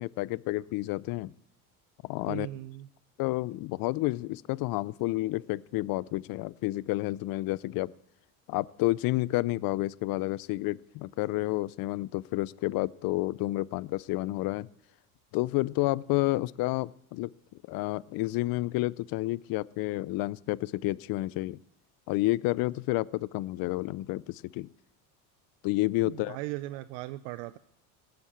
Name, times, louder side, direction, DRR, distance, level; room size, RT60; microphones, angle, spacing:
voice 1, 0.0-1.3 2.0-2.5 3.2-7.9 8.5-14.7 15.3-17.3 17.7-21.6 22.1-24.7 25.6-26.4, left 19 dB, 50° left, 22 dB, 0.5 m, -30 dB
voice 2, 2.3-2.9 26.0-27.6, right 17 dB, 75° right, 13 dB, 0.7 m, -38 dB
18.0 x 7.8 x 8.5 m, 0.74 s
supercardioid pair, 105°, 44 cm